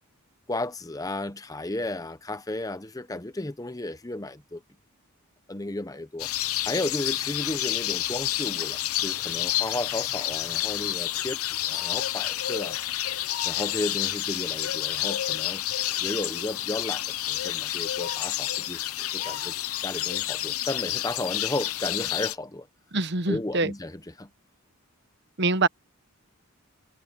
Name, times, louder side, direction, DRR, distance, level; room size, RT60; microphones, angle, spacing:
voice 1, 0.5-4.6 5.5-6.3 6.6-12.8 13.4-15.6 16.0-19.5 19.8-22.7 23.3-24.3, left 2 dB, 15° left, 0.8 m, -33 dB
sound 1, 6.2-22.4, left 13 dB, 80° left, 0.9 m, -29 dB
voice 2, 22.9-23.7 25.4-25.7, right 3 dB, 50° right, 1.1 m, -24 dB
head